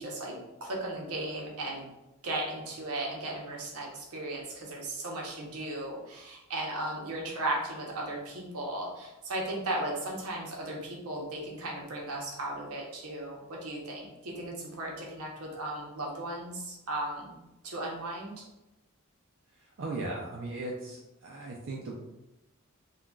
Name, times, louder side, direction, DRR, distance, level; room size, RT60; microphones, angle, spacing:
voice 1, 0.0-1.8 2.2-18.4, right 1 dB, 85° right, -2 dB, 0.8 m, -36 dB
voice 2, 19.6-21.9, right 2 dB, 60° right, -2 dB, 0.4 m, -37 dB
3.7 x 2.3 x 2.3 m, 0.95 s
head